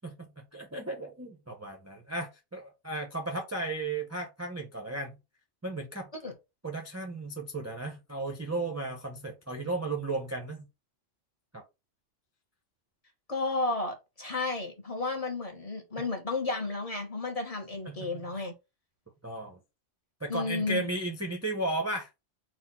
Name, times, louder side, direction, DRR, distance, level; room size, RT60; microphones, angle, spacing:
voice 1, 0.0-5.2 5.6-6.1 6.6-10.7 11.5-11.6 17.9-18.2 19.2-19.6 20.2-22.1, right 2 dB, 20° right, 0.5 m, -35 dB
voice 2, 13.3-18.5 20.3-20.9, left 3 dB, 30° left, 1.0 m, -32 dB
4.1 x 2.4 x 4.2 m
omnidirectional pair, 1.3 m